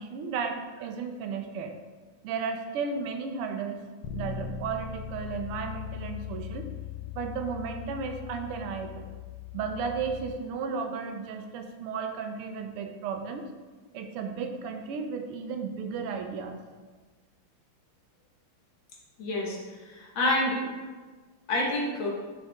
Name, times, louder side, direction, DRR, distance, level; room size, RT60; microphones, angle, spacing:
voice 1, 0.0-1.7 2.2-3.8 4.1-6.7 7.1-9.1 9.5-13.4 13.9-16.6, right 5 dB, 80° right, 5 dB, 1.6 m, -34 dB
Bass guitar, 4.0-10.3, left 8 dB, 90° left, 1.8 m, -39 dB
voice 2, 19.2-20.6 21.5-22.1, left 1 dB, 65° left, -3 dB, 2.2 m, -28 dB
6.9 x 6.4 x 3.5 m, 1.4 s
omnidirectional pair, 2.4 m